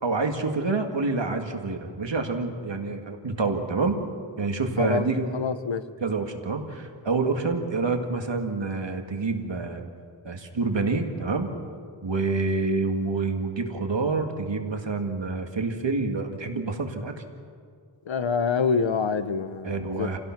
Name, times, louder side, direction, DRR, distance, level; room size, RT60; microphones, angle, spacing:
voice 1, 0.0-4.0 4.4-5.4 6.0-9.9 10.2-11.5 12.0-17.1 19.6-20.2, right 3 dB, 75° right, 4 dB, 2.1 m, -27 dB
voice 2, 4.8-5.1 5.3-5.8 18.1-20.1, left 5 dB, 80° left, 12 dB, 1.0 m, -26 dB
28.5 x 16.5 x 6.0 m, 2.1 s
wide cardioid pair, 60°, 45 cm